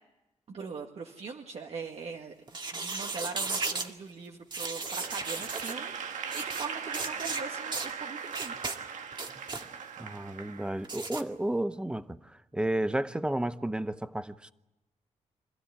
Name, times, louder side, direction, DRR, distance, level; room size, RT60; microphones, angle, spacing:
voice 1, 0.5-2.3 2.7-8.5, right 5 dB, 60° right, 1.9 m, -41 dB
sound 1, 2.5-3.9 4.5-5.8 6.3-6.7 6.9-7.4 7.7-7.9 8.3-8.8 9.1-9.6 10.8-11.2, right 3 dB, 40° right, 2.2 m, -35 dB
Applause / Crowd, 4.8-11.1, right 6 dB, 85° right, 1.7 m, -39 dB
voice 2, 10.0-14.5, right 1 dB, 10° right, 0.8 m, -32 dB
26.0 x 15.5 x 10.0 m
wide cardioid pair, 120°, 12 cm